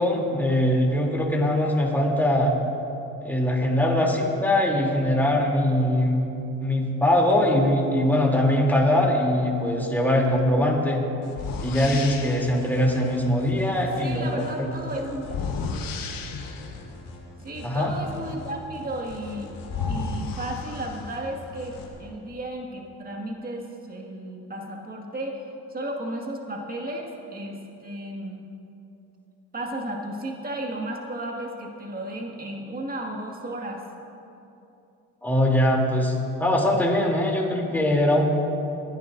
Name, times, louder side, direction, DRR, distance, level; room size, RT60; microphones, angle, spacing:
voice 1, 0.0-2.6 3.2-6.3 6.6-11.0 11.6-14.3 14.6-14.7 17.6-17.9 35.2-38.2, left 1 dB, 5° left, -2 dB, 3.0 m, -22 dB
sound 1, 10.4-10.5 11.3-12.6 15.2-16.8 19.1-19.2 19.6-21.3, left 4 dB, 60° left, 1.3 m, -32 dB
sound 2, 11.2-21.9, left 2 dB, 75° left, 2.9 m, -42 dB
voice 2, 14.0-15.3 17.4-19.5 19.9-25.4 25.7-28.5 29.5-33.8, right 1 dB, 20° right, 0 dB, 2.0 m, -34 dB
26.5 x 11.0 x 2.6 m, 2.8 s
supercardioid pair, 75°, 39 cm